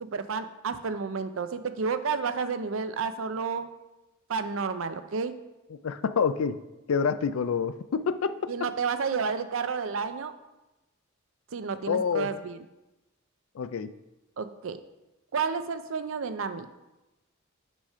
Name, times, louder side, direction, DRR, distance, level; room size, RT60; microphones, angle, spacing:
voice 1, 0.0-3.7 4.3-5.3 8.5-10.3 11.5-12.6 14.4-14.8 15.3-16.7, right 5 dB, 70° right, 11 dB, 0.5 m, -31 dB
voice 2, 5.8-6.5 6.9-8.3 9.1-9.2 11.9-12.3 13.6-13.9, left 6 dB, 85° left, 12 dB, 0.4 m, -27 dB
6.1 x 4.9 x 5.5 m, 1.0 s
head